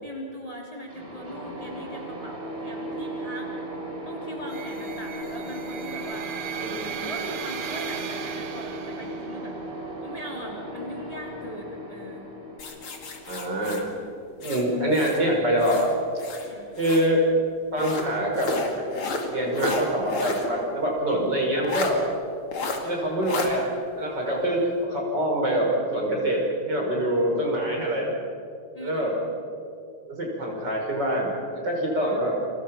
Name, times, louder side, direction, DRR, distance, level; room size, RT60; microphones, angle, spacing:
voice 1, 0.0-3.6 4.0-6.3 7.0-9.6 10.0-12.3 16.4-16.7 24.2-24.5 28.7-29.2 31.9-32.3, equal, 15° left, -1 dB, 3.5 m, -40 dB
sound 1, 0.9-14.6, right 1 dB, 25° right, 4.4 m, -37 dB
sound 2, 4.5-9.5, right 8 dB, 90° right, 2.2 m, -36 dB
voice 2, 6.6-7.0 13.3-13.8 14.4-15.9 16.8-17.2 17.7-18.8 19.3-22.0 22.8-23.6 23.9-26.4 26.6-28.1 28.8-29.1 30.1-32.3, equal, 55° right, -1 dB, 6.1 m, -25 dB
sound 3, 12.6-15.2 15.6-17.1 17.8-20.5 20.8-20.9 21.6-21.9 22.5-22.8 23.2-23.5, left 3 dB, 80° left, 3.2 m, -32 dB
29.5 x 24.0 x 6.0 m, 2.5 s
omnidirectional pair, 2.3 m